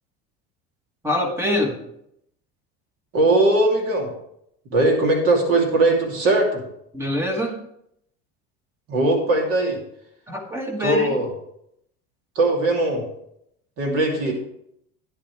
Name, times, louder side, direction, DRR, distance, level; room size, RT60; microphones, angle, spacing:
voice 1, 1.0-1.8 6.9-7.6 10.3-11.1, left 1 dB, 10° right, 3 dB, 1.4 m, -24 dB
voice 2, 3.1-4.1 4.7-6.6 8.9-9.8 10.8-11.3 12.3-13.0 13.8-14.3, right 2 dB, 50° right, 0 dB, 3.0 m, -19 dB
11.0 x 10.0 x 3.4 m, 0.75 s
cardioid pair, 155°, 30 cm